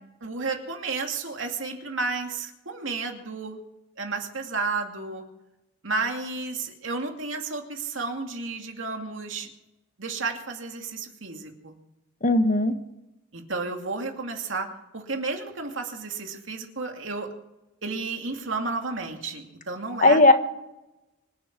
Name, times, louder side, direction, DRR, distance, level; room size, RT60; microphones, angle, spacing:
voice 1, 0.2-3.6 4.0-5.2 5.8-9.5 10.0-11.8 13.3-14.7 14.9-17.3 17.8-20.2, right 3 dB, 80° right, 3 dB, 2.5 m, -32 dB
voice 2, 12.2-12.7 20.0-20.3, left 2 dB, 45° left, 8 dB, 1.3 m, -17 dB
25.5 x 8.6 x 6.1 m, 0.95 s
head